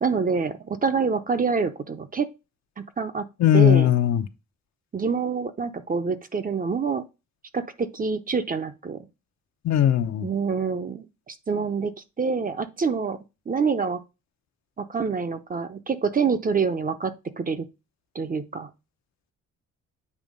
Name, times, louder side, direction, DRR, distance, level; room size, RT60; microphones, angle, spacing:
voice 1, 0.0-2.3 2.8-3.3 3.5-3.9 4.9-7.0 7.5-9.1 10.2-13.2 13.5-14.0 14.8-17.7 18.1-18.7, right 5 dB, 30° right, 0.7 m, -26 dB
voice 2, 3.4-4.2 9.6-10.3, left 10 dB, 65° left, 0.8 m, -18 dB
8.4 x 2.9 x 5.2 m
cardioid pair, 90°, 30 cm